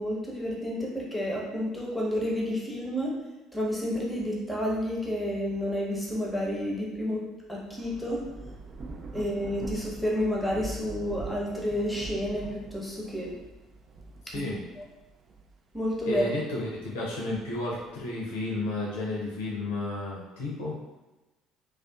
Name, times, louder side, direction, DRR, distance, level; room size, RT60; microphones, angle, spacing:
voice 1, 0.0-3.1 3.5-7.2 7.5-8.2 9.1-13.3 14.3-14.4 15.7-16.2, equal, 5° left, -4 dB, 0.8 m, -30 dB
Thunder / Rain, 7.5-16.4 16.9-18.3, right 3 dB, 40° right, 0.3 m, -43 dB
voice 2, 16.1-20.8, left 2 dB, 70° left, -4 dB, 0.6 m, -32 dB
2.4 x 2.4 x 2.3 m, 1.1 s
figure-of-eight pair, 55°, 0 cm